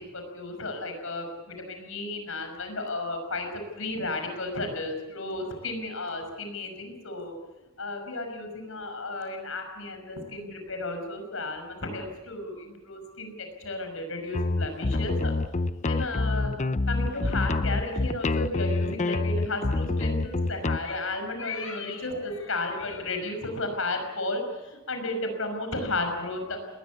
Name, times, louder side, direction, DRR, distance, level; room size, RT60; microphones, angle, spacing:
voice 1, 0.0-3.5 3.8-7.3 7.8-13.3 13.6-15.3 15.8-16.5 16.9-26.6, left 2 dB, 70° left, 5 dB, 5.8 m, -33 dB
sound 1, 14.3-20.8, left 2 dB, 35° left, 0.7 m, -27 dB
20.5 x 20.0 x 8.4 m, 1.1 s
head